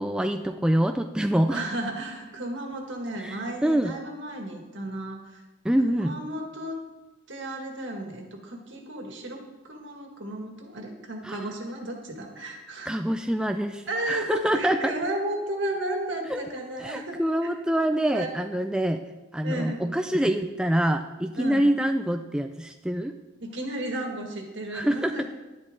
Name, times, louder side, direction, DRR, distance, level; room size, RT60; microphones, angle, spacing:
voice 1, 0.0-1.6 3.2-3.9 5.6-6.2 11.2-11.5 12.9-14.9 16.3-16.4 16.8-19.0 19.3-23.1 24.7-25.1, right 1 dB, 5° right, 5 dB, 0.3 m, -25 dB
voice 2, 1.5-5.4 5.9-6.8 7.3-12.9 13.9-17.2 18.1-18.4 19.4-19.8 21.4-21.6 23.4-25.3, right 1 dB, 65° right, 2 dB, 1.9 m, -33 dB
11.0 x 10.5 x 3.8 m, 1.1 s
head